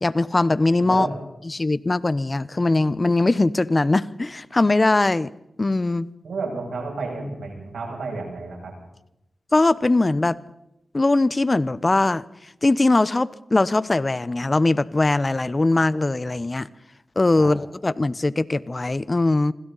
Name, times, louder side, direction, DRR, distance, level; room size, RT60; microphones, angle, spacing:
voice 1, 0.0-1.1 1.5-5.3 5.6-6.1 9.5-10.4 10.9-12.2 12.6-16.7 17.2-19.5, left 2 dB, 40° left, 1.0 m, -21 dB
voice 2, 6.2-8.7 17.4-17.5, right 3 dB, 85° right, 7.8 m, -31 dB
26.5 x 26.0 x 4.2 m
cardioid pair, 40°, 0 cm